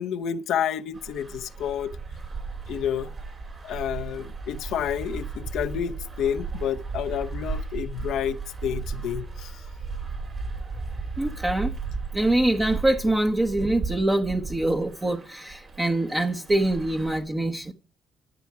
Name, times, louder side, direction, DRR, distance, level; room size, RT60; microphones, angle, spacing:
voice 1, 0.0-1.9 2.7-3.1 3.6-9.5, left 9 dB, 85° left, 0.7 m, -29 dB
sound 1, 0.9-17.2, right 4 dB, 45° right, 4.9 m, -35 dB
voice 2, 11.2-11.7 12.1-17.7, right 1 dB, 20° right, 1.2 m, -24 dB
13.5 x 8.4 x 4.7 m
cardioid pair, 90°, 0 cm